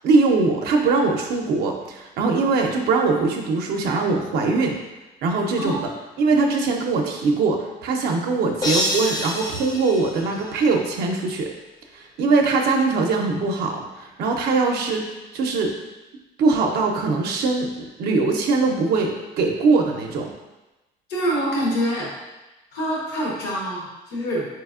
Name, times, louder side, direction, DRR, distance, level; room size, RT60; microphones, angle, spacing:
voice 1, 0.0-4.8 5.2-5.9 6.2-11.5 11.9-15.7 16.4-17.7 18.0-20.3, right 3 dB, 70° right, 1 dB, 0.5 m, -21 dB
sound 1, 8.6-10.9, left 1 dB, 20° left, 0.4 m, -27 dB
voice 2, 21.1-22.1 22.7-24.5, equal, 85° left, -5 dB, 1.1 m, -25 dB
4.0 x 2.9 x 2.4 m, 1.1 s
cardioid pair, 110°, 17 cm